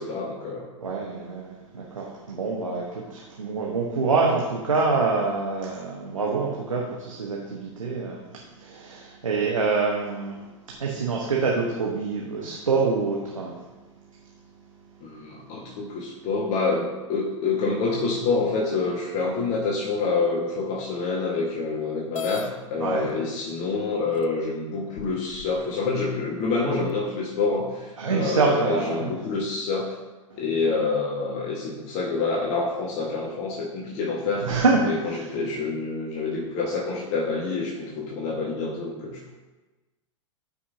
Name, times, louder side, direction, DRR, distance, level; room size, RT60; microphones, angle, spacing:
voice 1, 0.0-0.7 15.0-29.9 30.3-34.5 34.8-39.3, left 3 dB, 40° left, -3 dB, 1.7 m, -27 dB
voice 2, 0.8-10.5 10.8-13.6 22.8-23.1 28.0-29.1 30.6-30.7 34.4-34.8 35.0-35.3, right 4 dB, 90° right, -3 dB, 1.3 m, -26 dB
sound 1, 22.1-22.5 23.5-23.6 24.2-24.3 25.0-25.6, left 7 dB, 85° left, 0.5 m, -33 dB
13.0 x 5.6 x 2.8 m, 1.2 s
hypercardioid pair, 105°, 17 cm